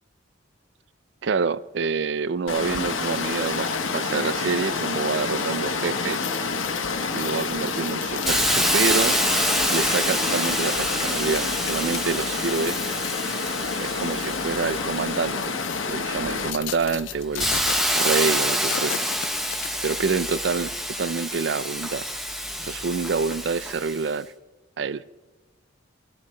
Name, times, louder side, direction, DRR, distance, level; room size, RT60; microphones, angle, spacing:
voice 1, 1.2-6.3 7.1-9.2 9.7-12.8 13.8-15.6 15.9-17.7 18.0-19.1 19.8-22.1 22.6-24.3 24.8-25.0, right 5 dB, 60° right, 0.4 m, -27 dB
Water, 2.5-16.5, left 4 dB, 90° left, 1.3 m, -28 dB
sound 1, 6.1-12.0 12.4-13.6 14.1-14.3 15.1-20.2 20.6-20.7, left 12 dB, 70° left, 0.4 m, -37 dB
Hiss, 8.3-15.8 16.3-24.1, equal, ahead, 0.8 m, -27 dB
19.5 x 18.0 x 3.3 m
head